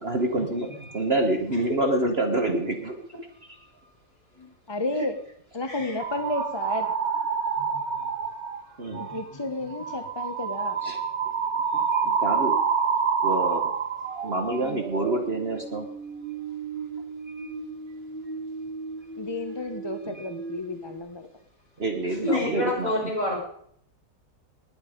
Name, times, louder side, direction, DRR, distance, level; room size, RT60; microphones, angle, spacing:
voice 1, 0.0-2.9 3.5-3.6 8.8-9.2 10.8-11.0 11.7-12.6 13.2-13.7 14.2-15.9 17.4-17.5 20.0-20.3 21.8-23.3, right 2 dB, 40° right, 5 dB, 1.4 m, -28 dB
voice 2, 4.7-5.2 5.5-6.9 8.9-10.8 14.6-14.8 19.2-21.3, left 2 dB, 20° left, 6 dB, 0.8 m, -32 dB
voice 3, 5.7-6.0 7.6-8.0 9.1-9.2 22.2-23.4, left 1 dB, 50° left, 0 dB, 6.2 m, -28 dB
sound 1, 6.0-8.6 9.0-9.3 9.7-20.0 20.3-21.0, right 6 dB, 80° right, 2.2 m, -29 dB
19.5 x 9.6 x 5.1 m, 0.67 s
omnidirectional pair, 1.9 m